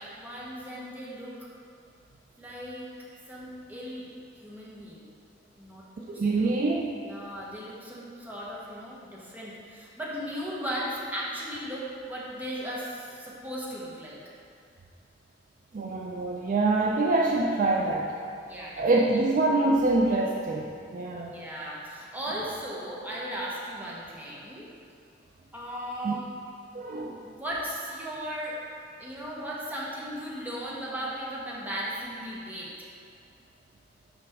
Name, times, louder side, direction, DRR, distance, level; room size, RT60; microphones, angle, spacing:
voice 1, 0.2-1.3 2.4-2.9 3.3-4.1 4.4-5.0 5.6-6.6 7.0-14.2 18.5-18.8 21.3-24.7 25.5-26.3 27.2-28.6 29.0-32.7, equal, 10° right, -6 dB, 1.0 m, -37 dB
voice 2, 6.1-6.9 15.7-18.2 18.8-21.3 26.0-26.1 26.7-27.2, right 2 dB, 45° right, -1 dB, 0.4 m, -25 dB
5.7 x 5.1 x 3.5 m, 2.3 s
head